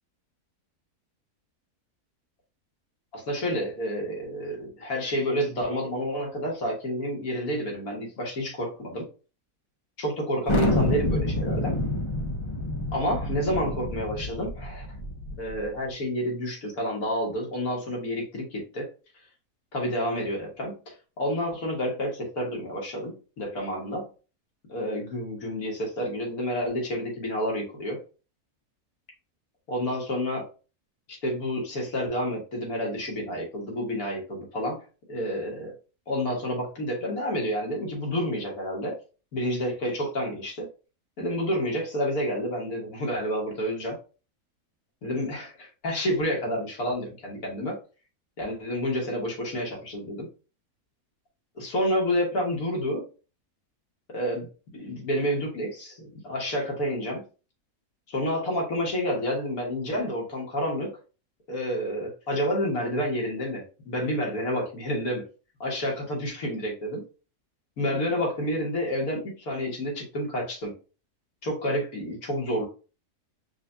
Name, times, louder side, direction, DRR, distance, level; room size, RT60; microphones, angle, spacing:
voice 1, 3.1-9.1 10.0-11.8 12.9-14.9 15.4-18.9 19.7-20.7 21.2-24.1 24.7-28.0 29.7-30.5 31.2-34.8 35.1-35.7 36.1-38.9 39.3-40.7 41.2-44.0 45.0-47.8 48.4-50.3 51.6-53.0 54.1-54.5 54.7-57.2 58.1-60.9 61.5-65.3 65.6-67.0 67.8-70.7 71.4-72.7, equal, 75° left, -2 dB, 2.0 m, -29 dB
Thunder, 10.5-15.6, left 1 dB, 45° left, 0.4 m, -28 dB
5.9 x 2.3 x 2.6 m, 0.33 s
omnidirectional pair, 1.6 m